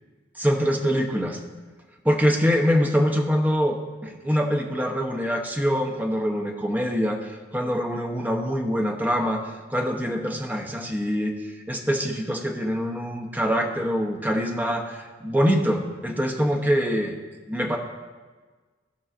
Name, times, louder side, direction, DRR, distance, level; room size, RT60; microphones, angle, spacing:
voice 1, 0.4-1.4 2.0-17.2 17.5-17.8, equal, 10° right, 2 dB, 0.7 m, -24 dB
16.0 x 5.4 x 2.5 m, 1.4 s
head